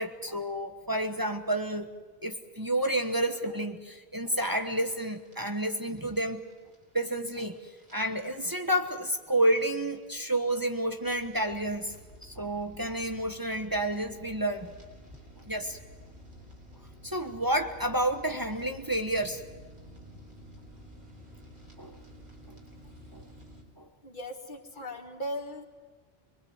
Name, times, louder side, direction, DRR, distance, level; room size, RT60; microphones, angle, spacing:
voice 1, 0.0-1.9 2.2-6.4 6.9-7.5 7.9-12.0 12.2-14.7 15.5-15.8 17.0-19.4 21.8-22.0 22.5-22.6 23.1-23.2 23.8-23.9, right 1 dB, 20° right, 5 dB, 1.3 m, -30 dB
sound 1, 4.3-23.6, equal, 55° right, 4.4 m, -52 dB
voice 2, 24.0-25.7, equal, 50° left, 3 dB, 2.4 m, -38 dB
23.0 x 23.0 x 8.1 m, 1.3 s
omnidirectional pair, 1.0 m